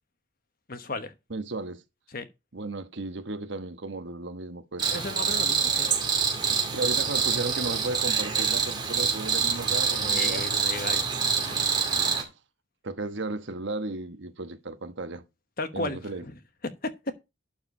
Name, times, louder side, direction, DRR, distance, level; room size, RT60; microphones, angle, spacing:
voice 1, 0.7-1.1 2.1-2.3 4.9-5.9 6.5-6.6 9.9-11.1 11.4-11.6 15.6-16.3, left 3 dB, 45° left, 1.2 m, -35 dB
voice 2, 1.3-1.8 2.5-5.0 6.7-10.4 11.9-12.3 12.8-15.2 15.7-16.2, right 2 dB, 60° right, 1.2 m, -35 dB
Cricket, 4.8-12.2, right 6 dB, 20° right, 2.6 m, -26 dB
12.0 x 4.6 x 5.4 m
head